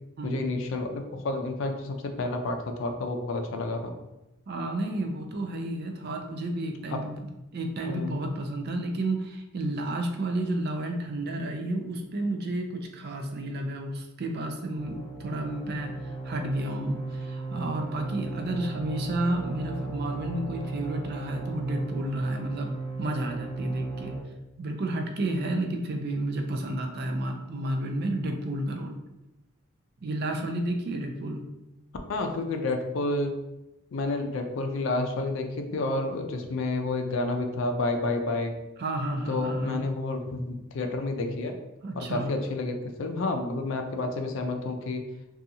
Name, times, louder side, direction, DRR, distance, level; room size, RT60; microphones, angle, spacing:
voice 1, 0.2-3.9 6.9-7.2 7.9-8.2 32.1-33.3 33.9-38.6 39.3-41.6 42.0-45.0, left 2 dB, 60° left, 5 dB, 0.4 m, -30 dB
voice 2, 4.5-7.3 7.5-22.7 23.0-24.1 24.6-29.0 30.0-31.5 38.8-39.8 41.8-42.4, right 1 dB, 50° right, 3 dB, 0.4 m, -31 dB
sound 1, 14.8-24.2, right 3 dB, 20° left, 0.9 m, -36 dB
2.7 x 2.3 x 2.6 m, 0.94 s
head